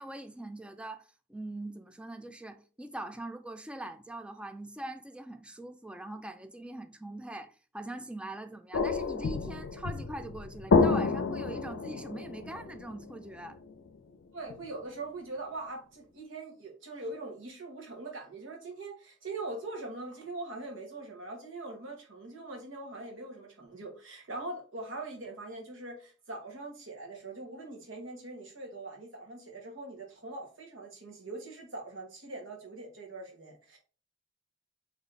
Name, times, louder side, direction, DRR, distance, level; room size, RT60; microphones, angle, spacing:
voice 1, 0.0-13.6, right 1 dB, 5° right, 0.3 m, -42 dB
sound 1, 8.7-14.0 14.5-14.6, left 4 dB, 85° left, 0.5 m, -29 dB
voice 2, 14.3-33.8, right 2 dB, 80° right, 1.3 m, -42 dB
4.0 x 3.0 x 3.3 m
head